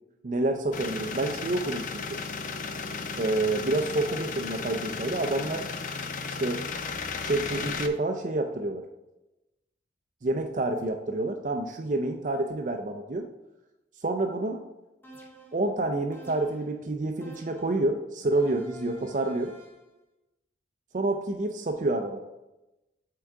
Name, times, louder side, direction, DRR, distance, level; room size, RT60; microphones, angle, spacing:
voice 1, 0.2-2.2 3.1-5.7 6.2-6.7 7.2-8.8 10.2-13.2 14.0-14.6 15.5-19.5 20.9-22.2, right 2 dB, 40° right, 4 dB, 0.4 m, -28 dB
sound 1, 0.7-7.9, left 4 dB, 45° left, 0.4 m, -35 dB
sound 2, 15.0-15.7 16.1-16.8 17.2-17.9 18.3-19.9, right 2 dB, 10° left, 0.8 m, -50 dB
7.9 x 3.8 x 3.6 m, 0.98 s
head